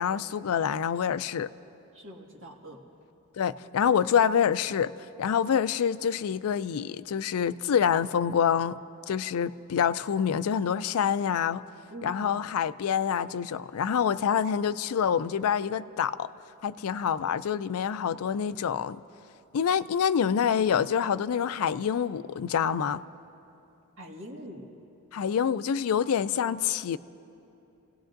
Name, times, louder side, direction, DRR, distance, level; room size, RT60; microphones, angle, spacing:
voice 1, 0.0-1.5 3.4-4.9 5.2-8.8 9.1-11.6 12.0-16.3 16.6-19.0 19.5-23.0 25.1-27.0, left 7 dB, 75° left, 15 dB, 0.4 m, -26 dB
voice 2, 1.9-2.8 11.9-12.5 24.0-24.7, equal, 60° right, -1 dB, 1.8 m, -44 dB
29.0 x 17.5 x 2.6 m, 2.8 s
head